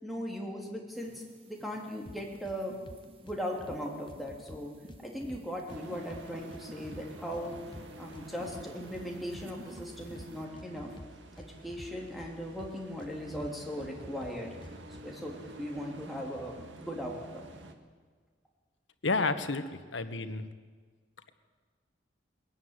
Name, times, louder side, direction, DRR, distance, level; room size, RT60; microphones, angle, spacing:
voice 1, 0.0-2.8 3.2-4.7 5.0-7.5 8.0-10.9 11.4-14.5 14.9-17.5, equal, ahead, -1 dB, 3.3 m, -38 dB
sound 1, 0.9-10.4, equal, 30° right, 1.8 m, -54 dB
sound 2, 2.1-2.6 2.9-3.8 4.1-5.8 6.1-7.0 7.3-9.1 9.3-10.3 10.6-12.3 12.6-13.5 13.8-15.0, left 1 dB, 25° left, 0.8 m, -49 dB
sound 3, 5.7-17.7, right 1 dB, 85° right, 1.8 m, -49 dB
voice 2, 19.0-20.5, left 3 dB, 90° left, 10 dB, 1.4 m, -31 dB
21.5 x 14.0 x 9.7 m, 1.5 s
head